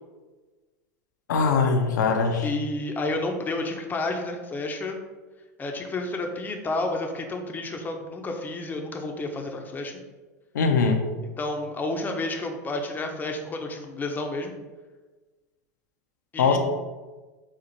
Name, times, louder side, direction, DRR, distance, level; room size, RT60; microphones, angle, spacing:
voice 1, 1.3-2.5 10.5-11.0 16.4-16.6, left 5 dB, 80° left, 3 dB, 0.5 m, -21 dB
voice 2, 2.4-5.0 5.6-10.0 11.4-14.5 16.3-16.6, left 2 dB, 20° left, 3 dB, 0.6 m, -30 dB
4.3 x 2.4 x 4.0 m, 1.3 s
hypercardioid pair, 100°, 9 cm